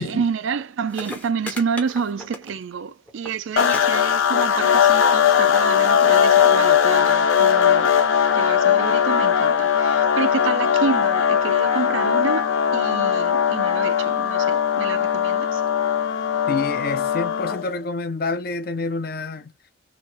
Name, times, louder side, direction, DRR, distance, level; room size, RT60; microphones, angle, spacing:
voice 1, 0.0-8.0 8.3-15.6, right 6 dB, 80° right, 0.4 m, -29 dB
sound 1, 0.6-0.7 0.9-2.8 3.1-3.4 3.7-3.8 4.1-4.6 5.4-5.5, left 1 dB, 5° left, 0.6 m, -35 dB
sound 2, 3.6-17.8, left 8 dB, 90° left, 0.6 m, -19 dB
voice 2, 16.5-19.5, left 3 dB, 50° left, 0.6 m, -28 dB
3.1 x 2.2 x 4.2 m
head